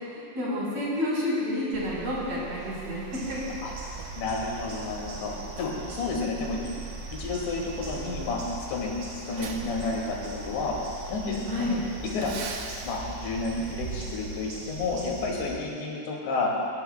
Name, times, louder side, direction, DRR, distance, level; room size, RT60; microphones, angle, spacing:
voice 1, 0.1-3.6 11.5-11.8, left 1 dB, 40° right, -7 dB, 5.5 m, -30 dB
Truck, 1.7-14.9, right 7 dB, 80° right, 1.8 m, -41 dB
sound 1, 3.1-15.6, right 1 dB, 65° right, 5.2 m, -42 dB
voice 2, 4.2-5.3 5.6-6.7 7.1-8.4 8.7-8.9 9.3-10.8 11.1-11.8 12.1-12.3 12.8-16.5, left 3 dB, 75° left, -2 dB, 4.5 m, -31 dB
23.0 x 18.0 x 2.3 m, 2.4 s
omnidirectional pair, 5.1 m